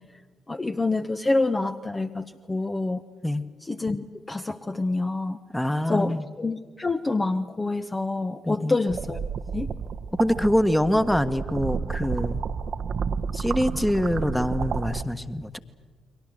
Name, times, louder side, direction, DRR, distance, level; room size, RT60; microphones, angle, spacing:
voice 1, 0.5-3.0 3.7-5.4 5.9-9.7, left 2 dB, 25° left, 7 dB, 1.0 m, -27 dB
voice 2, 5.5-6.2 8.4-8.8 10.2-12.4 13.3-15.6, left 1 dB, 5° left, 12 dB, 1.5 m, -24 dB
sound 1, 8.9-15.0, right 6 dB, 50° right, 1.0 m, -31 dB
30.0 x 23.5 x 6.7 m, 1.5 s
figure-of-eight pair, 40°, 0 cm